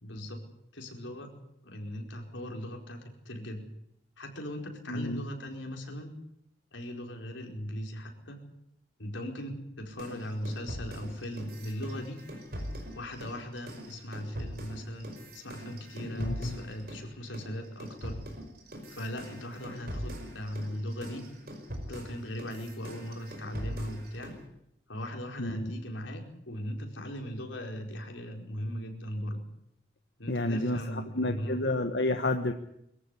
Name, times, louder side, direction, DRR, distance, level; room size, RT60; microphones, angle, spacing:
voice 1, 0.0-0.4 0.7-1.3 1.6-3.7 4.2-6.1 6.7-8.4 9.0-12.2 12.9-18.2 18.9-21.3 21.9-24.4 24.9-29.4 30.2-31.6, equal, 85° left, 2 dB, 4.8 m, -39 dB
voice 2, 4.9-5.2 16.0-16.6 25.4-25.7 30.3-32.5, left 2 dB, 65° left, 6 dB, 1.3 m, -30 dB
sound 1, 10.0-17.1 17.3-24.4, equal, 55° right, 5.2 m, -42 dB
23.0 x 14.5 x 9.9 m, 0.79 s
head